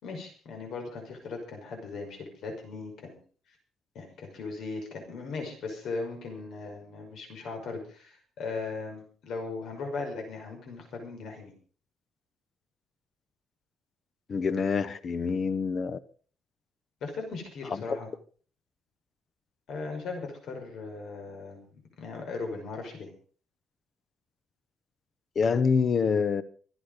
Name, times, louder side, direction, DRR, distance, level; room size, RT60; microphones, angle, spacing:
voice 1, 0.0-3.2 3.9-11.5 17.0-18.1 19.7-23.1, left 3 dB, 55° left, 5.5 m, -38 dB
voice 2, 14.3-16.0 17.9-18.0 25.4-26.4, left 5 dB, 35° left, 0.8 m, -26 dB
24.5 x 8.7 x 5.2 m
cardioid pair, 165°, 0 cm